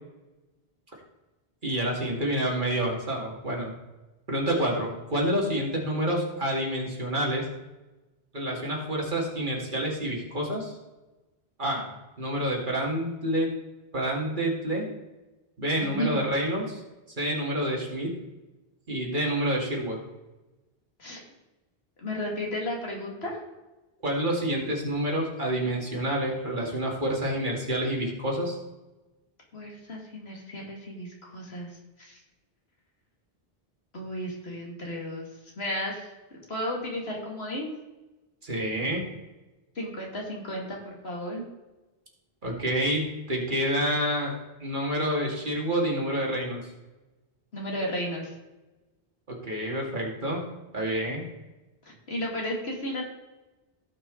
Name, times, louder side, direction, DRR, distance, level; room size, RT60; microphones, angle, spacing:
voice 1, 1.6-3.7 4.3-7.4 8.3-10.7 11.6-11.9 12.2-13.5 13.9-14.9 15.6-16.8 17.2-18.1 18.9-20.0 24.0-28.6 38.4-39.0 42.4-44.3 44.6-46.7 49.3-50.4 50.7-51.2, right 1 dB, 50° right, -2 dB, 2.5 m, -28 dB
voice 2, 15.8-16.2 21.0-21.2 22.0-23.4 29.5-31.7 32.0-32.2 33.9-35.3 35.6-36.1 36.5-37.7 39.7-41.4 47.5-48.3 51.8-53.0, equal, 85° left, -1 dB, 2.6 m, -33 dB
16.5 x 5.8 x 4.0 m, 1.1 s
omnidirectional pair, 1.0 m